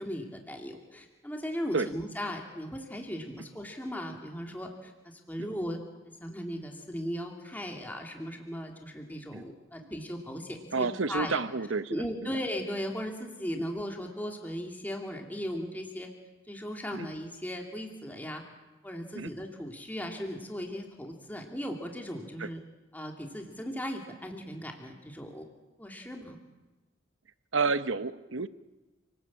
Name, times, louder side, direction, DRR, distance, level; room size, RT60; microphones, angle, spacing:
voice 1, 0.0-5.8 6.2-11.4 11.9-16.1 16.5-18.4 18.8-22.6 22.9-25.5 25.8-26.4, equal, 10° left, 2 dB, 2.7 m, -37 dB
voice 2, 10.7-12.4 16.9-17.1 19.1-19.3 22.4-22.5 27.5-28.5, right 4 dB, 80° right, 13 dB, 1.0 m, -30 dB
29.5 x 19.5 x 8.7 m, 1.2 s
head